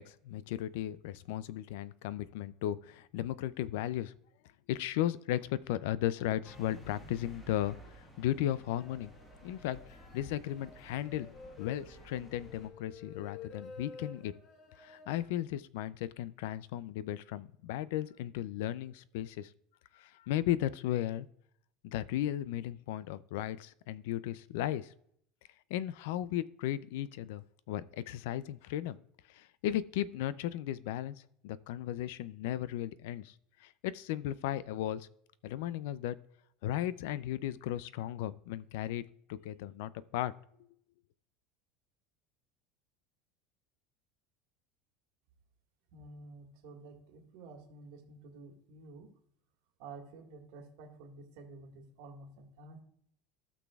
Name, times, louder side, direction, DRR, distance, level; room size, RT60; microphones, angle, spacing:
voice 1, 0.0-4.1 4.7-9.1 9.4-9.8 10.1-11.3 11.6-14.3 14.8-19.5 19.9-21.3 21.8-24.9 25.7-29.0 29.3-31.2 31.4-33.3 33.6-35.1 35.4-36.2 36.6-40.3, left 12 dB, 70° left, 18 dB, 0.4 m, -35 dB
sound 1, 6.4-12.7, right 1 dB, 15° left, 1.4 m, -54 dB
sound 2, 8.8-15.2, left 5 dB, 35° left, 1.3 m, -51 dB
voice 2, 45.9-49.1 49.8-52.8, right 3 dB, 65° right, 1 dB, 1.7 m, -51 dB
16.5 x 6.0 x 2.3 m, 0.69 s
cardioid pair, 170°, 0 cm